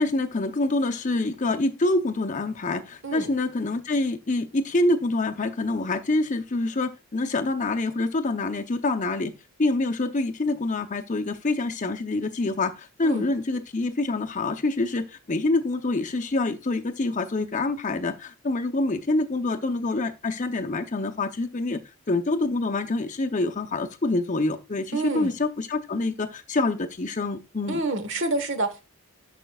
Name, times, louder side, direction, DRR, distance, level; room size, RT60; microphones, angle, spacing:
voice 1, 0.0-9.3 9.6-21.8 22.1-27.8, left 2 dB, 35° left, 0.6 m, -26 dB
voice 2, 24.9-25.3 27.7-28.9, right 2 dB, 55° right, 1.3 m, -28 dB
12.0 x 5.1 x 2.3 m
head